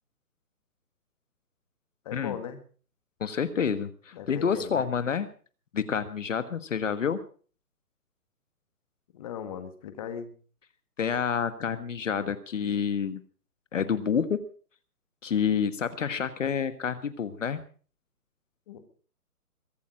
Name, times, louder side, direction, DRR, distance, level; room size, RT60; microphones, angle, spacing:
voice 1, 2.1-2.6 4.1-4.9 9.1-10.3 18.7-18.8, left 8 dB, 25° left, 9 dB, 1.7 m, -38 dB
voice 2, 3.2-5.3 5.7-7.2 11.0-13.2 13.7-14.4 15.2-17.6, left 7 dB, 55° left, 12 dB, 1.5 m, -28 dB
22.5 x 9.3 x 6.3 m, 0.43 s
hypercardioid pair, 165°, 46 cm